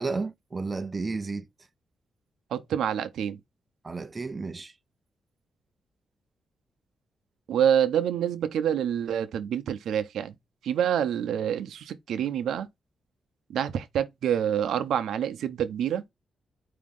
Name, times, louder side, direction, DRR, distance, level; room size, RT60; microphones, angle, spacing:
voice 1, 0.0-1.5 3.8-4.7, right 3 dB, 25° right, 0.5 m, -32 dB
voice 2, 2.5-3.4 7.5-10.4 10.6-12.7 13.5-16.0, right 9 dB, 90° right, 0.7 m, -27 dB
5.1 x 2.9 x 3.6 m
cardioid pair, 115°, 0 cm